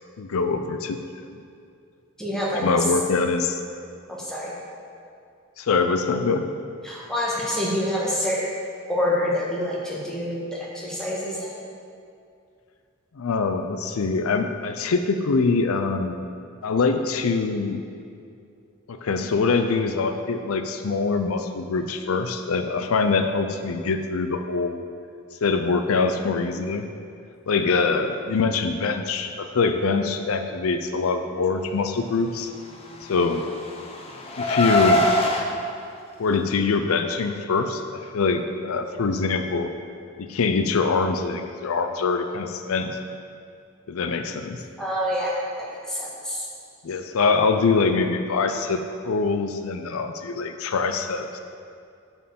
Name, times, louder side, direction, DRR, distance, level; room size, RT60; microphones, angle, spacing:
voice 1, 0.2-1.0 2.6-3.6 5.6-6.5 13.2-16.2 16.6-17.8 18.9-24.8 25.4-26.9 27.5-32.5 33.1-33.4 34.4-35.1 36.2-39.7 40.2-43.0 43.9-44.6 46.8-51.4, left 4 dB, 85° left, 7 dB, 0.5 m, -24 dB
voice 2, 2.2-2.9 4.2-4.5 6.8-8.5 8.9-11.5 44.8-46.4, left 1 dB, 5° left, -6 dB, 1.4 m, -27 dB
Car, 32.9-35.4, left 1 dB, 30° left, 0.8 m, -23 dB
9.1 x 4.5 x 6.9 m, 2.4 s
head